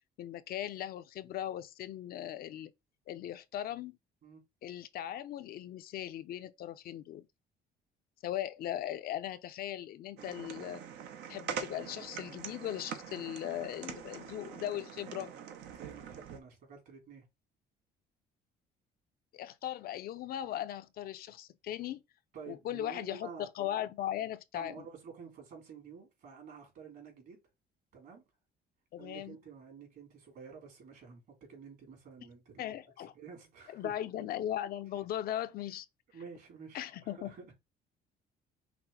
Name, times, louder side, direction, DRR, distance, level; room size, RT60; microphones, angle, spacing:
voice 1, 0.2-2.7 3.1-4.0 4.6-7.3 8.2-10.8 11.3-15.3 19.3-22.0 22.5-24.9 28.9-29.4 32.6-33.1 33.7-35.9 36.7-37.3, left 12 dB, 65° left, 0.6 m, -38 dB
sound 1, 10.2-16.4, right 7 dB, 80° right, 0.9 m, -44 dB
voice 2, 15.7-17.2 22.3-23.5 24.5-27.4 27.9-28.2 29.0-32.7 33.1-33.9 34.2-34.3 36.1-37.5, right 6 dB, 65° right, 3.3 m, -50 dB
5.9 x 2.1 x 3.9 m
cardioid pair, 110°, 17 cm